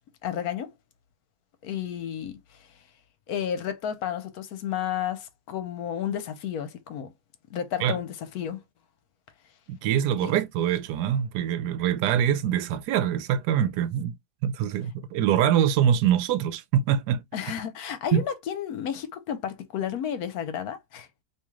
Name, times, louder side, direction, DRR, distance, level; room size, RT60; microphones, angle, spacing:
voice 1, 0.2-0.7 1.6-2.7 3.3-7.1 7.5-8.6 10.2-10.3 17.3-21.2, left 9 dB, 70° left, 1.1 m, -32 dB
voice 2, 9.7-14.2 14.4-17.2 18.1-18.2, right 9 dB, 85° right, 1.2 m, -24 dB
3.1 x 2.9 x 3.5 m
omnidirectional pair, 1.7 m